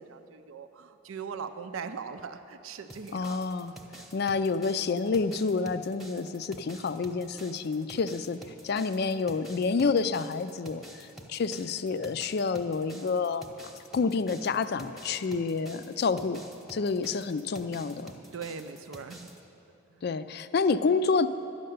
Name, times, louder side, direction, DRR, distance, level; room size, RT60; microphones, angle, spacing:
voice 1, 0.0-3.4 18.1-19.3 19.9-20.1, right 6 dB, 85° right, 9 dB, 0.5 m, -40 dB
sound 1, 2.9-19.4, equal, ahead, 0.8 m, -49 dB
voice 2, 3.1-3.7 4.1-13.5 13.9-16.4 16.7-18.1 20.0-21.3, left 4 dB, 50° left, 12 dB, 0.4 m, -28 dB
12.0 x 6.6 x 9.3 m, 3.0 s
head